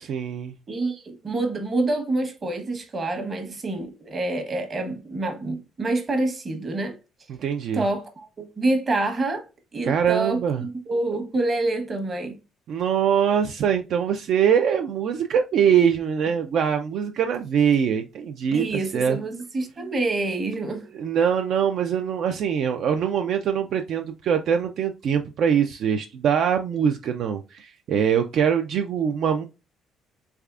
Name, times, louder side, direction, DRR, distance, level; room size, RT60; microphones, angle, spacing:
voice 1, 0.1-0.5 7.3-7.8 9.8-10.6 12.7-18.6 18.9-19.2 20.9-29.5, right 8 dB, 60° right, 0.3 m, -23 dB
voice 2, 0.7-7.0 7.7-9.4 9.7-12.4 18.5-20.9, right 2 dB, 30° right, 0.9 m, -27 dB
3.4 x 3.2 x 2.4 m
cardioid pair, 110°, 0 cm